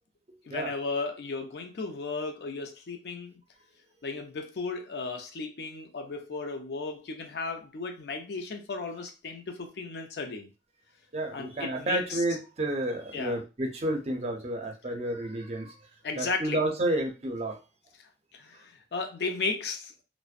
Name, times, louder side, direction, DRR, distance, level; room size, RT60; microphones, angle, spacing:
voice 1, 0.5-3.4 4.0-10.5 11.3-12.2 13.1-13.3 16.0-16.6 18.3-20.0, left 4 dB, 65° left, 0.4 m, -35 dB
voice 2, 11.1-15.7 16.2-17.6, right 1 dB, 35° right, 0.5 m, -30 dB
2.5 x 2.1 x 2.4 m
head